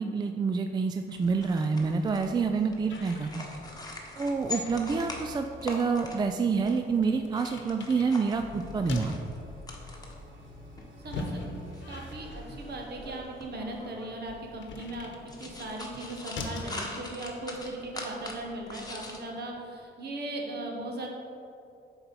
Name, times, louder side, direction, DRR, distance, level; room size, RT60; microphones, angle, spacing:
voice 1, 0.0-3.5 4.2-9.2, right 5 dB, 20° right, 6 dB, 0.3 m, -28 dB
sound 1, 1.1-19.2, left 2 dB, 20° left, 1.2 m, -44 dB
sound 2, 2.9-16.8, left 3 dB, 70° left, 1.0 m, -44 dB
sound 3, 4.7-15.4, equal, 75° right, 1.1 m, -50 dB
voice 2, 11.0-15.1 15.4-21.1, right 1 dB, 55° right, 1 dB, 1.4 m, -38 dB
6.9 x 4.3 x 5.3 m, 2.6 s
cardioid pair, 90°, 20 cm